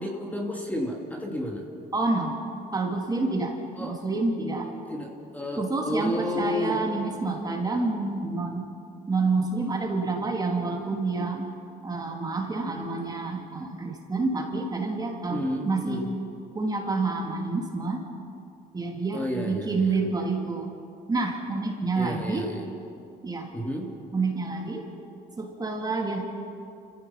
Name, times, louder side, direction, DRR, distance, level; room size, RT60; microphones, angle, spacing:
voice 1, 0.0-1.7 3.8-4.0 4.9-6.8 10.1-10.3 15.3-16.1 19.1-20.0 22.0-22.7 23.5-23.9, left 1 dB, 10° left, 0 dB, 2.5 m, -31 dB
voice 2, 1.9-2.3 2.7-4.7 5.6-8.7 9.1-11.4 11.8-16.0 16.5-18.0 18.7-20.7 21.1-22.5 23.2-23.5 24.1-24.9 25.4-26.2, right 3 dB, 20° right, 1 dB, 2.7 m, -28 dB
29.0 x 16.0 x 5.7 m, 2.6 s
cardioid pair, 110°, 17 cm